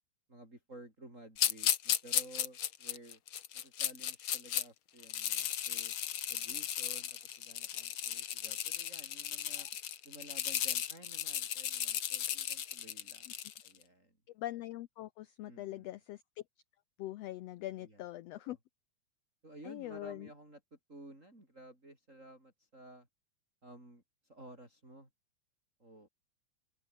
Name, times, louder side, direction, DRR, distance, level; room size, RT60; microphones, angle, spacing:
voice 1, 0.3-3.2 3.5-5.9 6.3-9.7 10.0-14.2 15.5-16.0 17.7-18.0 18.4-18.6 19.4-23.1 23.6-25.1 25.8-26.1, right 1 dB, 25° right, 7.6 m, -54 dB
sound 1, 1.4-4.6 5.0-13.7, left 10 dB, 55° left, 1.7 m, -35 dB
voice 2, 14.3-16.2 17.0-18.6 19.6-20.3, left 15 dB, 75° left, 1.6 m, -42 dB
open air
omnidirectional pair, 3.5 m